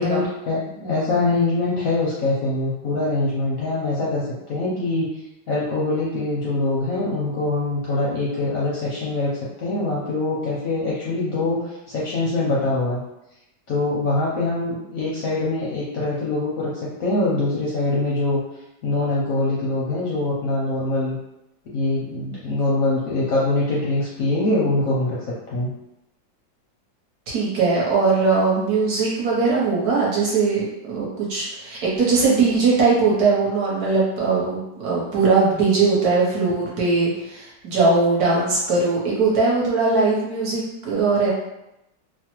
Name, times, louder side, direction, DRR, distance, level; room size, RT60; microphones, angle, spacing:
voice 1, 0.0-5.1 5.5-13.0 13.7-18.4 18.8-21.2 21.7-25.2 25.5-25.7, left 2 dB, 70° left, -6 dB, 0.8 m, -23 dB
voice 2, 27.3-41.3, right 4 dB, 60° right, -6 dB, 1.2 m, -20 dB
3.1 x 2.0 x 2.9 m, 0.88 s
omnidirectional pair, 2.0 m